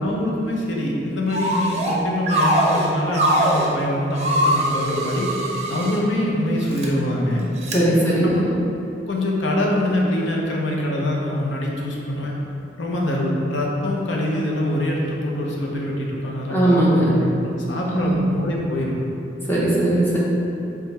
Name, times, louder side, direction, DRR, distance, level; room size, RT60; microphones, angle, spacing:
voice 1, 0.0-5.3 5.7-7.4 8.2-8.4 9.1-12.3 12.8-18.9, left 1 dB, 70° left, -2 dB, 0.8 m, -24 dB
sound 1, 1.3-2.0 2.3-3.7 4.2-6.0 6.6-6.9 7.6-7.8, right 1 dB, 35° right, 0.6 m, -21 dB
voice 2, 7.7-8.5 16.5-17.1 17.9-18.1 19.5-20.2, right 1 dB, 10° left, -7 dB, 0.8 m, -18 dB
3.7 x 3.4 x 4.1 m, 2.8 s
head